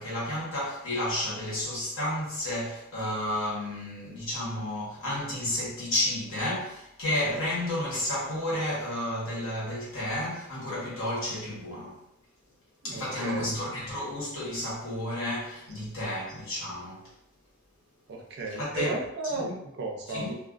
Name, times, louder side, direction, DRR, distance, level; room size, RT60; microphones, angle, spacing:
voice 1, 0.0-12.0 12.8-17.1 18.5-18.9 19.2-19.5 20.1-20.4, left 1 dB, 65° left, -7 dB, 1.1 m, -31 dB
voice 2, 12.8-13.5 18.1-20.3, right 3 dB, 50° right, 1 dB, 0.4 m, -34 dB
2.3 x 2.3 x 2.4 m, 0.79 s
head